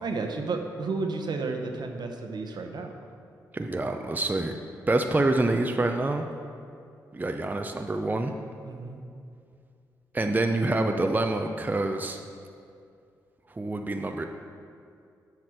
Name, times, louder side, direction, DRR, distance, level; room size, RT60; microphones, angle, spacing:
voice 1, 0.0-2.9 8.6-9.0, right 3 dB, 60° right, 4 dB, 1.0 m, -32 dB
voice 2, 3.5-4.6 4.9-6.2 7.1-8.3 10.1-12.2 13.5-14.2, right 2 dB, 20° right, 4 dB, 0.6 m, -26 dB
7.7 x 5.8 x 6.5 m, 2.4 s
supercardioid pair, 45°, 8 cm